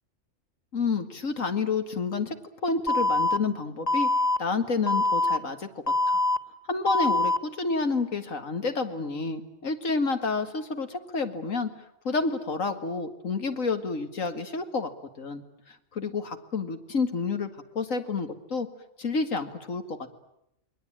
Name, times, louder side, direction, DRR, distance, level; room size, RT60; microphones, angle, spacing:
voice 1, 0.7-2.4 2.6-4.1 4.4-5.7 6.1-6.2 6.7-11.7 12.0-14.9 15.2-17.5 17.8-18.7 19.0-20.0, left 4 dB, 75° left, 7 dB, 2.3 m, -29 dB
Alarm, 2.9-3.4 3.9-4.4 4.9-5.4 5.9-6.4 6.9-7.4, left 2 dB, 30° left, 1.4 m, -23 dB
28.5 x 21.5 x 8.8 m, 0.81 s
omnidirectional pair, 1.4 m